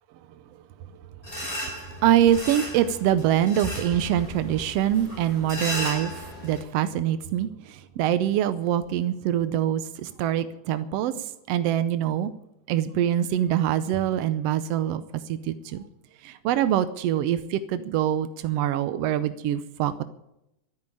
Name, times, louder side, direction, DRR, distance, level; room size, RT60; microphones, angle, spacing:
sound 1, 1.2-6.6, left 1 dB, 15° left, 5.5 m, -35 dB
voice 1, 2.0-6.1 6.4-12.3 12.7-15.0 15.3-15.8 16.2-20.0, right 11 dB, 80° right, 12 dB, 1.4 m, -24 dB
13.0 x 9.6 x 8.7 m, 0.84 s
omnidirectional pair, 3.5 m